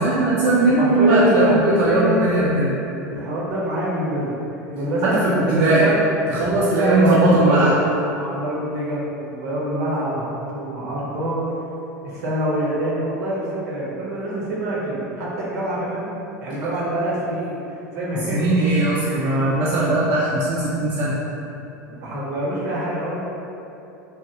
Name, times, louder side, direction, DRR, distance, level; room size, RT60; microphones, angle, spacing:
voice 1, 0.0-2.7 5.0-5.9 6.3-7.8 18.3-21.1, right 2 dB, 45° right, -6 dB, 0.4 m, -18 dB
voice 2, 0.8-2.3 3.0-4.3 4.7-6.0 6.7-7.2 7.4-7.8 8.1-11.4 12.0-16.1 16.4-18.6 19.1-19.9 21.8-23.2, right 1 dB, 60° right, -5 dB, 0.9 m, -26 dB
3.4 x 2.6 x 2.9 m, 2.9 s
figure-of-eight pair, 80°, 10 cm